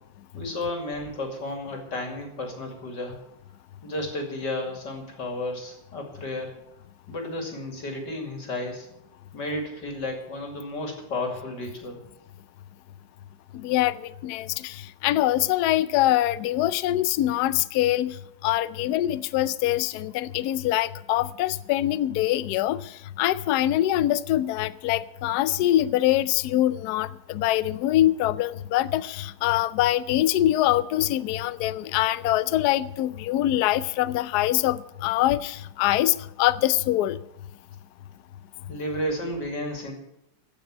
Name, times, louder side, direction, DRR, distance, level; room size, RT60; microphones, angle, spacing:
voice 1, 0.3-3.2 3.8-6.5 7.1-8.9 9.3-12.0 38.7-39.9, left 1 dB, 50° left, 2 dB, 3.1 m, -32 dB
voice 2, 13.5-18.2 18.4-22.8 23.2-37.2, left 14 dB, 85° left, 16 dB, 0.8 m, -24 dB
15.0 x 6.1 x 8.8 m, 0.83 s
omnidirectional pair, 2.4 m